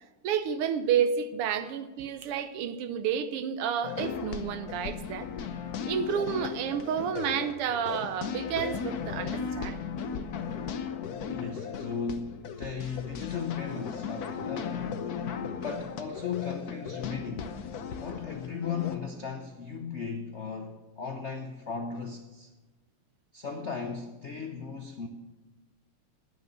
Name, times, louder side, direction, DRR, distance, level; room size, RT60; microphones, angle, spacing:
voice 1, 0.2-5.3 5.9-9.8, right 8 dB, 85° right, 1.8 m, -30 dB
sound 1, 3.8-19.0, left 6 dB, 60° left, 1.1 m, -36 dB
voice 2, 11.3-15.3 15.6-17.5 18.0-22.5 23.3-25.1, left 6 dB, 80° left, 0.6 m, -36 dB
12.0 x 9.1 x 6.7 m
omnidirectional pair, 2.4 m